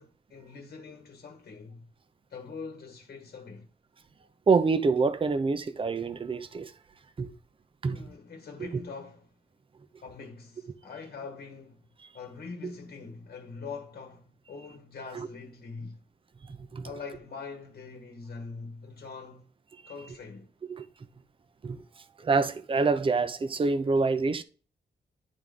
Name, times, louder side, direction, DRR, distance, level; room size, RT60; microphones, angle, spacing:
voice 1, 0.0-1.9 2.3-3.7 7.9-9.3 10.0-11.9 12.1-16.0 16.8-19.5 19.9-20.5, left 4 dB, 60° left, 1.2 m, -43 dB
voice 2, 4.5-6.7 7.2-7.3 7.8-8.0 8.6-8.8 15.1-15.3 16.5-16.9 20.7-20.8 21.6-21.8 22.2-24.4, right 4 dB, 30° right, 0.6 m, -26 dB
10.5 x 3.7 x 3.7 m
wide cardioid pair, 120°, 18 cm